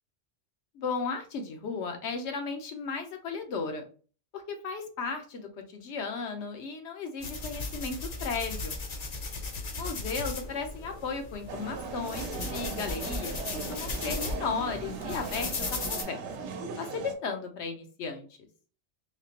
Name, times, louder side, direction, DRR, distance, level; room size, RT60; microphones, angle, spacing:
voice 1, 0.7-3.8 4.3-8.0 8.2-8.8 9.8-16.2 16.8-18.3, left 4 dB, 85° left, 4 dB, 1.0 m, -35 dB
sound 1, 7.2-16.0, left 3 dB, 45° left, 0.6 m, -36 dB
sound 2, 11.5-17.1, right 5 dB, 85° right, 0.9 m, -38 dB
3.5 x 2.8 x 2.8 m, 0.39 s
omnidirectional pair, 1.1 m